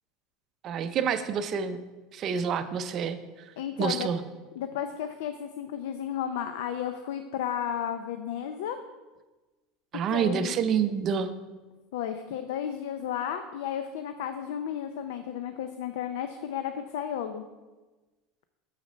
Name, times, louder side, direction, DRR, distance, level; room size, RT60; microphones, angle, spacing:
voice 1, 0.6-1.8 2.1-3.2 3.8-4.2 9.9-11.3, right 7 dB, 30° right, 10 dB, 0.5 m, -27 dB
voice 2, 3.6-4.1 4.6-8.8 10.1-10.5 11.9-17.4, left 9 dB, 80° left, 8 dB, 0.5 m, -33 dB
6.5 x 6.2 x 5.1 m, 1.2 s
cardioid pair, 165°, 0 cm